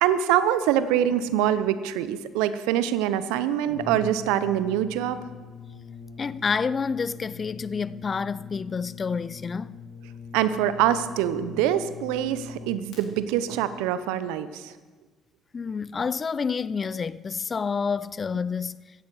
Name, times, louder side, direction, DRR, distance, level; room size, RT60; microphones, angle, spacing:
voice 1, 0.0-5.2 10.3-14.7, right 11 dB, 75° right, 0.8 m, -24 dB
Brass instrument, 3.7-13.0, left 5 dB, 65° left, 4.8 m, -42 dB
voice 2, 6.2-9.8 15.5-18.8, left 5 dB, 40° left, 0.5 m, -28 dB
15.5 x 15.0 x 4.8 m
hypercardioid pair, 50°, 0 cm